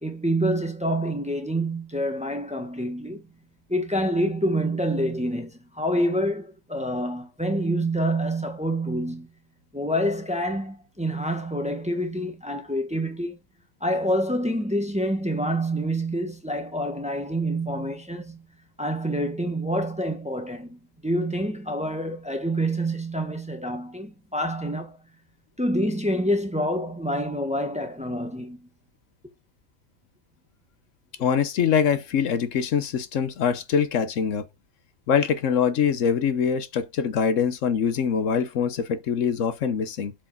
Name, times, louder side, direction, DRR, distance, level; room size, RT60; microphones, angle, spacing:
voice 1, 0.0-3.2 3.7-9.3 9.7-13.4 13.8-18.4 18.8-25.0 25.6-28.7, equal, 5° right, 1.1 m, -27 dB
voice 2, 31.2-34.5 35.1-40.1, left 7 dB, 75° left, 1.2 m, -24 dB
7.5 x 4.7 x 4.0 m
omnidirectional pair, 1.3 m